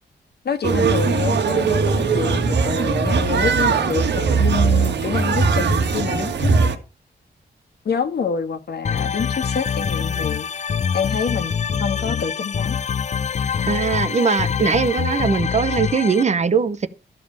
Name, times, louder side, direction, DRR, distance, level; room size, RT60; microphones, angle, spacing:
voice 1, 0.4-6.7 7.8-10.5 10.9-12.8, left 6 dB, 65° left, 1.6 m, -27 dB
sound 1, 0.6-6.8, right 4 dB, 80° right, 1.6 m, -19 dB
sound 2, 8.8-16.2, left 7 dB, 40° left, 0.5 m, -25 dB
voice 2, 13.6-16.9, right 5 dB, 40° right, 0.8 m, -20 dB
13.0 x 5.4 x 7.4 m
wide cardioid pair, 135°, 18 cm